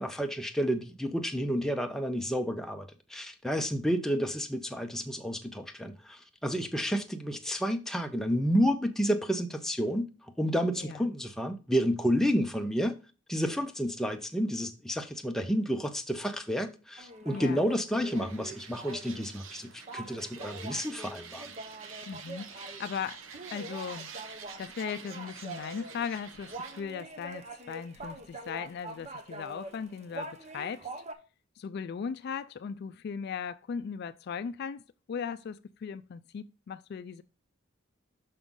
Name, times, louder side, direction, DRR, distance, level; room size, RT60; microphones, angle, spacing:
voice 1, 0.0-10.1 10.4-13.0 13.3-21.5, equal, ahead, 0.6 m, -30 dB
voice 2, 10.8-11.1 17.3-17.6 22.1-24.1 24.6-30.9 31.6-34.8 35.1-37.2, left 6 dB, 55° left, 0.3 m, -38 dB
sound 1, 17.0-31.1, right 2 dB, 35° right, 0.7 m, -44 dB
sound 2, 18.0-26.8, right 6 dB, 80° right, 0.9 m, -47 dB
6.0 x 5.5 x 3.7 m
head